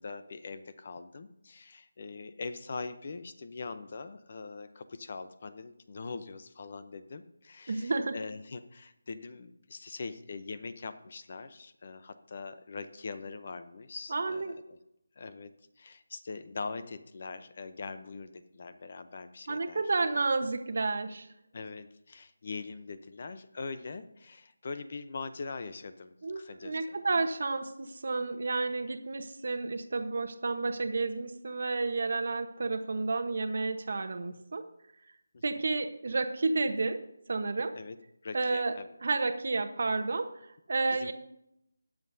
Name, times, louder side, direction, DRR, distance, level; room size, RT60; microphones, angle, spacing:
voice 1, 0.0-14.8 15.2-19.8 21.5-26.8 35.3-35.4 37.7-38.0 38.2-38.9 40.9-41.1, left 4 dB, 40° left, 11 dB, 0.7 m, -42 dB
voice 2, 7.7-8.2 14.1-14.5 19.5-21.3 26.2-34.6 35.4-37.0 37.3-37.7 38.3-38.8 39.0-40.3 40.7-41.1, right 3 dB, 50° right, 7 dB, 1.0 m, -31 dB
21.0 x 7.5 x 2.7 m, 0.80 s
figure-of-eight pair, 170°, 0 cm